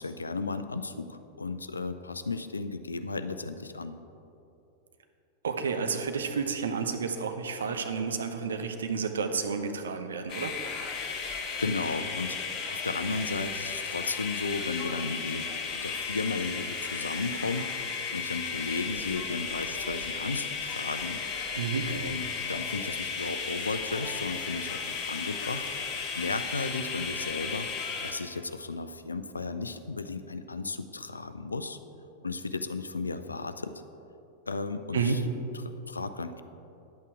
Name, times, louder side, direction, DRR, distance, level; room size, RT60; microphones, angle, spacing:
voice 1, 0.0-4.0 11.6-12.4 12.7-15.5 15.8-17.8 18.1-21.2 21.9-25.7 26.1-31.8 32.2-33.7 34.5-35.2 35.6-36.4, left 3 dB, 80° left, 10 dB, 0.4 m, -34 dB
voice 2, 5.4-10.5 21.5-21.9 34.9-35.2, right 5 dB, 70° right, 6 dB, 0.8 m, -30 dB
sound 1, 10.3-28.1, left 5 dB, 35° left, 1.4 m, -34 dB
10.5 x 8.3 x 4.7 m, 2.9 s
figure-of-eight pair, 90°, 0 cm